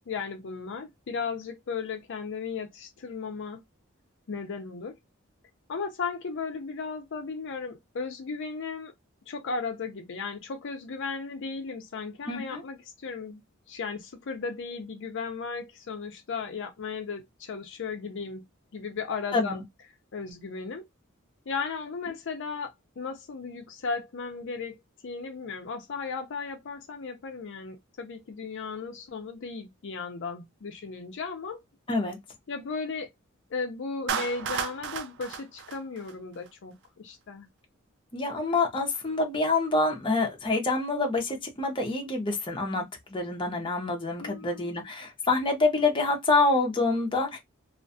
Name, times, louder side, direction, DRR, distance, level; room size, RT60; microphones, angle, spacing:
voice 1, 0.1-3.6 4.3-5.0 5.7-8.9 9.3-13.4 13.7-18.4 18.7-19.6 20.1-20.9 21.5-24.8 25.0-31.6 32.5-33.1 33.5-37.5 44.2-44.8, left 4 dB, 60° left, 0.5 m, -35 dB
voice 2, 12.3-12.6 19.3-19.6 31.9-32.2 38.1-47.4, left 3 dB, 25° left, 0.7 m, -26 dB
Clapping, 34.1-36.5, right 7 dB, 60° right, 0.4 m, -33 dB
2.4 x 2.3 x 2.5 m
head